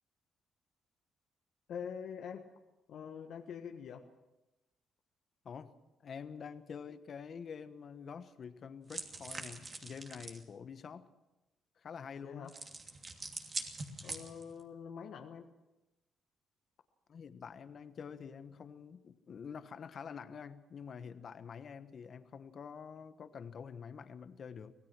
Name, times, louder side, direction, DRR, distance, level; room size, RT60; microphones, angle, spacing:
voice 1, 1.7-2.5 2.9-4.1 12.2-12.5 14.0-15.5, left 7 dB, 70° left, 4 dB, 1.4 m, -45 dB
voice 2, 6.0-11.1 11.8-12.5 17.1-24.7, left 6 dB, 50° left, 11 dB, 1.3 m, -47 dB
sound 1, 8.9-10.4 12.5-14.6, right 3 dB, 35° right, 2.8 m, -44 dB
25.0 x 17.0 x 6.1 m, 1.0 s
cardioid pair, 90°, 0 cm